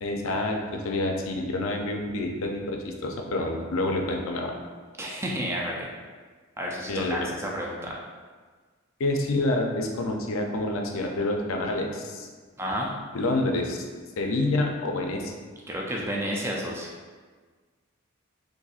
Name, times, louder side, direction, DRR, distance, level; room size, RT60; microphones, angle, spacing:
voice 1, 0.0-4.5 6.9-7.3 9.0-12.3 13.1-13.8 14.2-15.3, left 2 dB, 80° left, 2 dB, 0.4 m, -28 dB
voice 2, 5.0-5.9 6.6-8.0 12.6-12.9 15.7-16.9, equal, 10° right, -2 dB, 0.3 m, -31 dB
4.0 x 2.6 x 2.4 m, 1.5 s
head